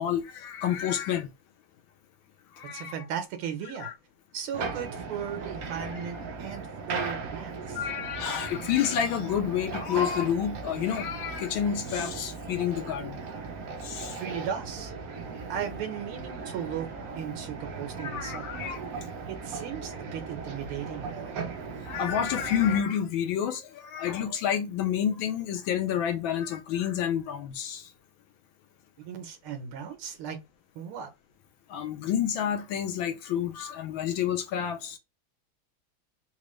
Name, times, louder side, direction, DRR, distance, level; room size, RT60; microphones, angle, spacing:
voice 1, 0.0-1.3 2.6-2.9 3.8-3.9 7.0-7.1 7.7-13.2 13.8-14.2 18.0-18.8 21.8-27.9 31.7-35.0, left 9 dB, 75° left, 1.3 m, -29 dB
voice 2, 2.7-3.9 4.3-7.8 14.2-14.9 15.5-18.6 19.3-21.4 29.1-30.4 30.8-31.1, right 8 dB, 80° right, 1.8 m, -36 dB
sound 1, 4.5-22.8, right 4 dB, 65° right, 0.9 m, -38 dB
4.0 x 2.4 x 3.1 m
omnidirectional pair, 2.3 m